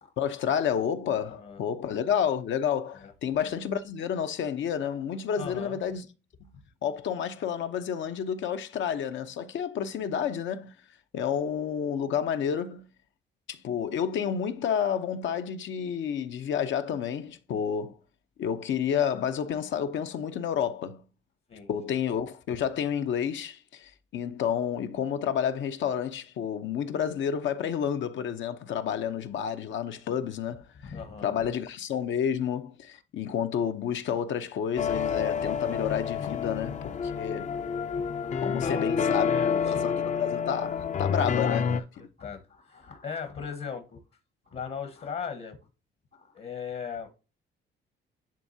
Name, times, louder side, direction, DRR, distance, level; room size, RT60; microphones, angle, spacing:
voice 1, 0.2-6.1 6.8-10.7 11.1-12.9 13.5-18.0 18.4-21.0 21.7-30.9 31.2-37.6 38.4-39.3 39.7-41.7, left 8 dB, 70° left, 0.8 m, -30 dB
voice 2, 1.2-1.6 2.9-3.1 5.3-5.8 21.5-21.7 28.8-29.1 30.8-31.3 37.4-37.6 37.9-40.1 41.2-44.0 44.4-45.6 46.1-47.1, left 6 dB, 55° left, 1.2 m, -39 dB
sound 1, 34.8-41.8, left 6 dB, 40° left, 0.5 m, -28 dB
10.5 x 3.6 x 2.7 m
cardioid pair, 90°, 20 cm